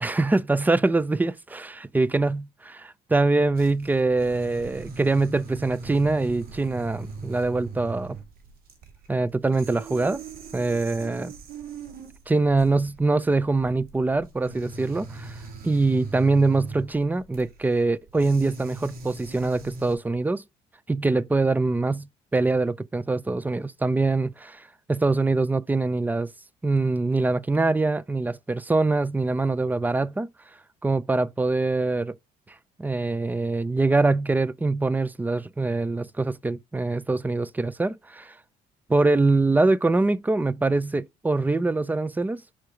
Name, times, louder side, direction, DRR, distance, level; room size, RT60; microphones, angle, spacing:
voice 1, 0.0-8.2 9.1-10.2 10.5-11.3 12.3-20.4 20.9-22.1 22.3-26.3 26.6-30.3 30.8-32.1 32.8-38.3 38.9-42.4, right 3 dB, 10° right, 0.5 m, -24 dB
sound 1, 3.6-20.0, right 4 dB, 60° right, 2.7 m, -41 dB
5.8 x 4.7 x 5.0 m
cardioid pair, 110°, 17 cm